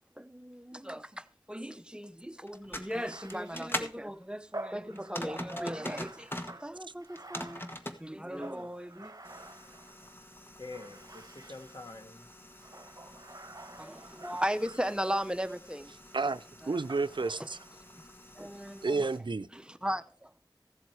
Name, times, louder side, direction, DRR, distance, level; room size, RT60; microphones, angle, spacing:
voice 1, 0.2-6.3 6.6-7.6 8.0-9.1 13.8-15.9 16.7-16.8 18.4-19.1 19.5-20.4, equal, 10° right, 0.8 m, -37 dB
sound 1, 2.5-4.0 4.9-6.6 7.0-8.0 9.2-19.2, equal, 25° left, 1.4 m, -44 dB
Bathtub (filling or washing), 2.9-10.2 10.7-12.0 12.6-15.7 16.9-17.9, right 2 dB, 45° right, 1.0 m, -49 dB
voice 2, 10.6-12.3, left 3 dB, 55° left, 1.7 m, -46 dB
voice 3, 16.1-17.6 18.8-19.5, right 3 dB, 80° right, 0.5 m, -31 dB
15.0 x 7.7 x 4.7 m
wide cardioid pair, 40°, 8 cm